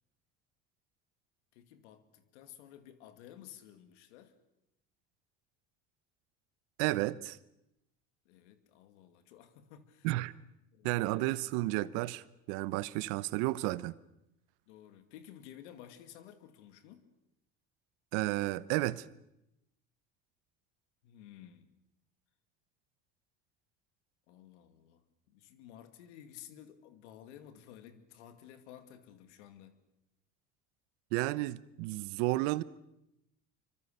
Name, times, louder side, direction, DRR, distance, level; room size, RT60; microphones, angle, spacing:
voice 1, 1.5-4.3 8.3-10.1 10.7-11.3 14.7-17.0 21.0-21.7 24.3-29.8, left 10 dB, 85° left, 2.4 m, -54 dB
voice 2, 6.8-7.4 10.0-10.3 10.8-13.9 18.1-19.0 31.1-32.6, right 18 dB, 80° right, 1.0 m, -32 dB
26.0 x 24.5 x 6.8 m
supercardioid pair, 80°, 34 cm